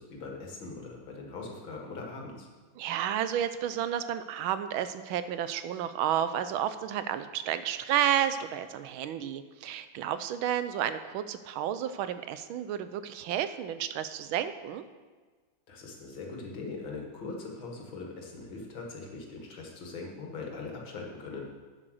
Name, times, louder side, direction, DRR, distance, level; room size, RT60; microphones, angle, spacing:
voice 1, 0.0-2.5 15.7-21.5, left 3 dB, 75° left, 0 dB, 2.5 m, -41 dB
voice 2, 2.8-14.8, right 10 dB, 85° right, 12 dB, 1.5 m, -31 dB
9.1 x 7.6 x 6.4 m, 1.4 s
omnidirectional pair, 2.2 m